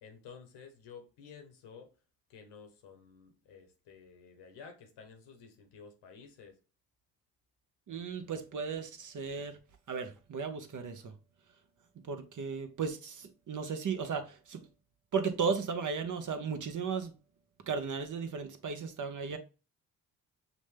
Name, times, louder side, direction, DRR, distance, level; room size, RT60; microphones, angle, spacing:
voice 1, 0.0-1.9 2.3-6.6, left 6 dB, 80° left, 1.1 m, -52 dB
voice 2, 7.9-9.6 9.9-11.1 12.0-14.6 15.1-17.1 17.7-19.4, right 5 dB, 45° right, 0.9 m, -35 dB
6.1 x 2.2 x 3.3 m
supercardioid pair, 50°, 41 cm